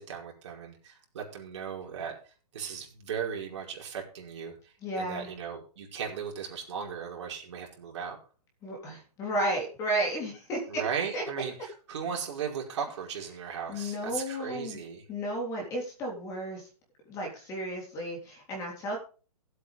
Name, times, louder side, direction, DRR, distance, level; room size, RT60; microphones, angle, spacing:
voice 1, 0.0-4.5 5.0-8.2 10.7-15.0, right 7 dB, 45° right, -1 dB, 5.0 m, -37 dB
voice 2, 4.8-5.3 8.6-10.8 11.1-11.2 13.7-14.8 15.1-16.7 17.1-19.0, right 1 dB, 15° left, 0 dB, 3.4 m, -33 dB
15.5 x 8.4 x 3.5 m, 0.37 s
hypercardioid pair, 165°, 20 cm